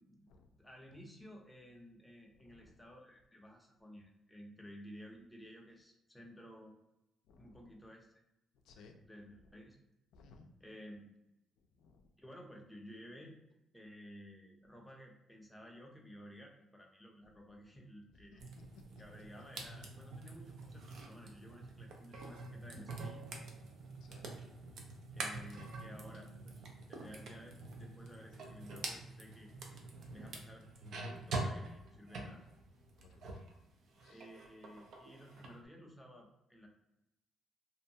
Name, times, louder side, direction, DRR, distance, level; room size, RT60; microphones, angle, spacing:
voice 1, 0.0-6.7 7.4-8.1 8.8-9.8 10.6-11.1 12.2-13.4 13.7-18.4 19.0-23.2 25.1-29.5 30.1-32.4 34.1-36.7, equal, 5° left, -1 dB, 0.5 m, -54 dB
voice 2, 2.3-2.8 7.3-7.8 8.6-9.0 10.1-10.5 11.7-12.1 18.3-18.8 24.0-24.3 33.0-33.2 34.0-34.3, left 4 dB, 90° left, 4 dB, 0.3 m, -61 dB
sound 1, 18.4-33.5 33.9-35.6, right 2 dB, 65° right, 0.5 m, -46 dB
2.6 x 2.2 x 2.7 m, 0.88 s
cardioid pair, 130°, 0 cm